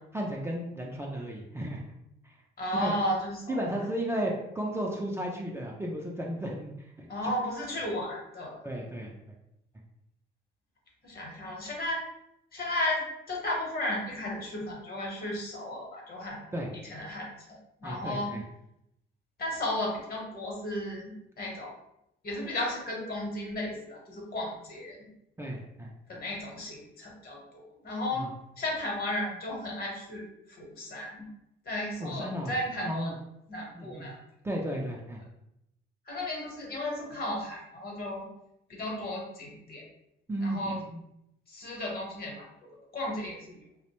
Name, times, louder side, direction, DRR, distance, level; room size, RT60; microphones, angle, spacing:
voice 1, 0.1-1.8 2.8-2.9 3.5-7.1 8.6-9.1 16.5-16.7 17.8-18.4 25.4-25.9 28.1-28.3 32.0-32.5 32.8-33.1 33.7-34.1 34.4-35.2 40.3-40.6 40.9-41.0, right 1 dB, 15° right, -2 dB, 0.4 m, -34 dB
voice 2, 2.6-3.7 7.1-8.6 11.0-12.0 12.5-13.0 13.3-16.4 16.7-18.4 19.4-21.7 22.2-25.0 26.1-28.2 28.6-31.3 31.6-33.1 33.5-34.2 36.1-38.3 38.7-39.8 40.4-40.8 41.5-43.6, left 1 dB, 50° left, -1 dB, 0.9 m, -34 dB
2.5 x 2.0 x 2.9 m, 0.82 s
cardioid pair, 90°, 20 cm